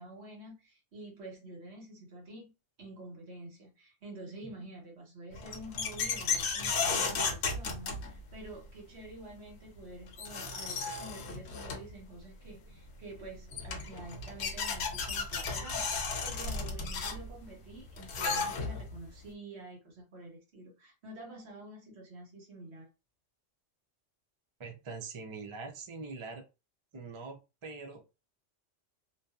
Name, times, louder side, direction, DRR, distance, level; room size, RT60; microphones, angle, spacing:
voice 1, 0.0-2.5 2.8-22.9, right 2 dB, 65° right, 1.3 m, -48 dB
sound 1, 5.3-8.5 9.8-9.9 10.1-12.0 13.1-13.2 13.5-19.0, left 4 dB, 65° left, 0.9 m, -34 dB
voice 2, 24.6-26.4 26.9-28.0, right 4 dB, 45° right, 0.4 m, -43 dB
2.6 x 2.3 x 2.3 m
omnidirectional pair, 1.2 m